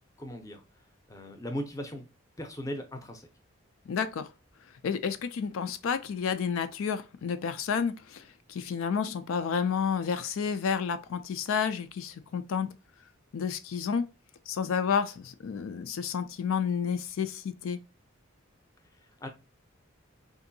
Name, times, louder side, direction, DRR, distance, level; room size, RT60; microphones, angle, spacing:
voice 1, 0.2-0.6 1.1-2.0 2.4-3.3 19.0-19.3, equal, 15° left, 0.5 m, -38 dB
voice 2, 3.9-4.3 4.8-12.7 13.3-14.0 14.5-17.8, left 6 dB, 80° left, 0.4 m, -30 dB
3.7 x 2.5 x 2.6 m
head